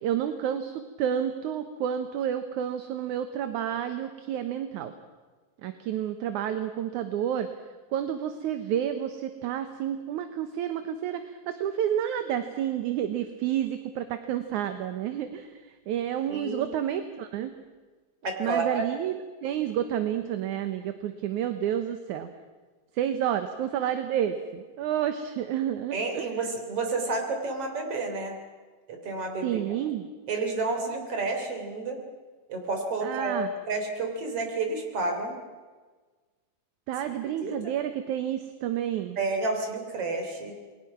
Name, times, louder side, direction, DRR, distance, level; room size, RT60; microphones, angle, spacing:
voice 1, 0.0-4.9 5.6-7.5 7.9-17.5 18.4-19.1 19.4-22.3 22.9-26.3 29.4-30.1 33.0-33.5 36.9-39.2, right 10 dB, 70° right, 9 dB, 2.3 m, -30 dB
voice 2, 16.3-16.7 18.2-18.8 25.9-28.4 28.9-29.6 30.3-32.0 32.5-35.4 37.4-37.7 39.2-40.6, right 3 dB, 45° right, 4 dB, 4.2 m, -30 dB
28.5 x 21.5 x 5.9 m, 1.4 s
omnidirectional pair, 3.8 m